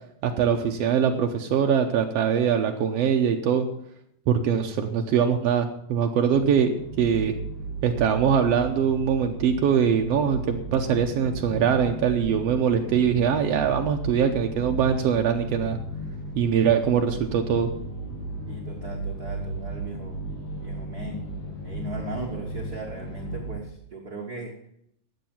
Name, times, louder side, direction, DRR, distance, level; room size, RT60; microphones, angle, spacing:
voice 1, 0.2-3.7 4.3-6.7 7.0-7.3 7.8-15.8 16.4-17.7, right 7 dB, 85° right, 3 dB, 1.4 m, -22 dB
sound 1, 6.3-23.6, right 2 dB, 70° left, 3.7 m, -35 dB
voice 2, 18.5-20.2 20.6-21.2 21.6-24.5, right 2 dB, 70° right, 1 dB, 0.8 m, -37 dB
12.0 x 8.1 x 7.2 m, 0.74 s
omnidirectional pair, 4.0 m